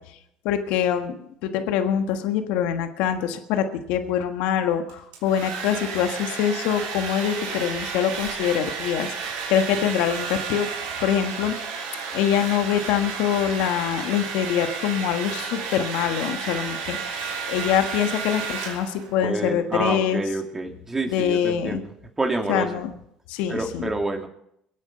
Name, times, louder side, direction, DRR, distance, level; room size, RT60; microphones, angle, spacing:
voice 1, 0.4-1.2 1.4-10.7 11.0-11.6 12.1-20.2 21.1-21.8 22.5-22.9 23.3-23.9, left 9 dB, 75° left, 7 dB, 1.5 m, -24 dB
Domestic sounds home sounds, 4.9-19.2, right 5 dB, 80° right, 3.4 m, -32 dB
voice 2, 19.2-22.8 23.5-24.3, right 2 dB, 20° right, 3 dB, 2.8 m, -28 dB
23.0 x 8.3 x 5.7 m, 0.74 s
hypercardioid pair, 70°, 2 cm